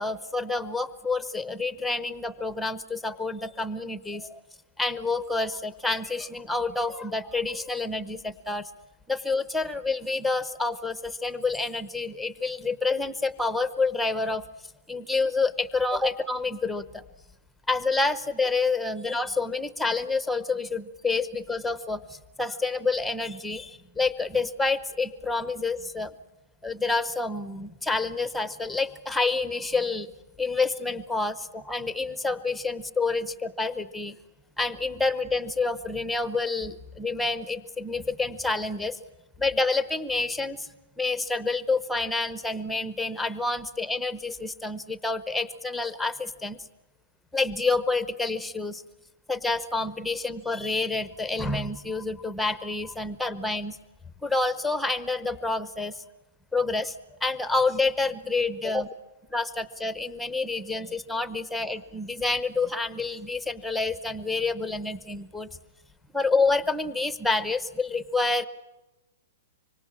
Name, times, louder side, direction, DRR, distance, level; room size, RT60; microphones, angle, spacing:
voice 1, 0.0-4.4 4.8-8.7 9.1-14.4 14.9-17.0 17.7-26.1 26.6-30.1 30.4-34.2 34.6-39.0 39.4-40.7 41.0-46.6 47.3-48.8 49.3-53.8 54.2-56.0 56.5-57.0 57.2-58.9 59.3-65.5 66.1-68.4, left 3 dB, ahead, 14 dB, 0.8 m, -28 dB
26.0 x 24.0 x 7.3 m, 1.0 s
hypercardioid pair, 175°, 0 cm